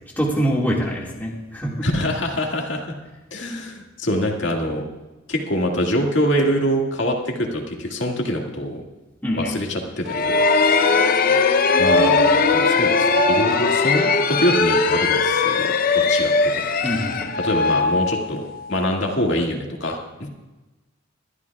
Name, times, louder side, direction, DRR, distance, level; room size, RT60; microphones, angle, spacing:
voice 1, 0.2-1.9 9.2-9.6 16.8-17.3, equal, 10° left, -3 dB, 1.9 m, -24 dB
voice 2, 1.8-2.9 3.3-4.8 5.3-8.8 9.3-11.4 11.8-14.0 14.3-15.7 15.9-17.0 17.4-18.4 18.7-20.3, equal, 60° left, 0 dB, 2.1 m, -25 dB
sound 1, 10.1-18.7, left 4 dB, 45° left, 0.7 m, -19 dB
22.5 x 13.0 x 2.4 m, 1.1 s
head